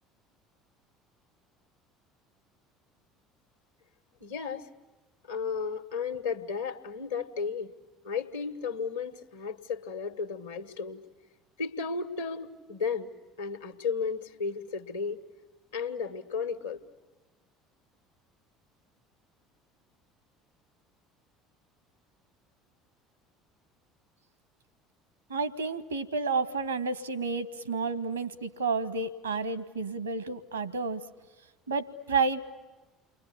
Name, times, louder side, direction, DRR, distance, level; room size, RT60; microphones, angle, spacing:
voice 1, 4.2-4.7 5.3-7.7 8.0-11.0 11.6-13.1 13.4-15.2 15.7-16.8, left 5 dB, 75° left, 8 dB, 1.7 m, -34 dB
voice 2, 25.3-31.0 31.7-32.4, right 4 dB, 85° right, 16 dB, 1.4 m, -30 dB
29.5 x 24.0 x 8.5 m, 1.2 s
figure-of-eight pair, 60°, 0 cm